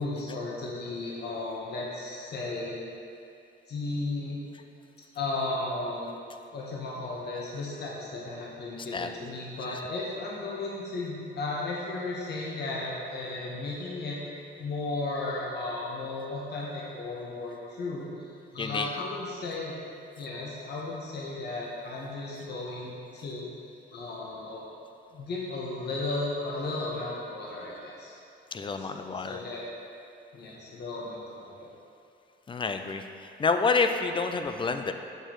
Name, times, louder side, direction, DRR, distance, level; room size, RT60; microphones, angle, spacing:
voice 1, 0.0-2.8 3.7-4.4 5.1-6.1 6.5-14.2 14.6-19.7 20.2-24.6 25.1-28.2 28.6-29.6 30.3-31.7, left 2 dB, 55° left, -4 dB, 1.1 m, -35 dB
voice 2, 18.6-18.9 28.5-29.4 32.5-34.9, left 4 dB, 25° left, 7 dB, 0.4 m, -28 dB
6.9 x 6.5 x 3.1 m, 2.5 s
cardioid pair, 90°, 20 cm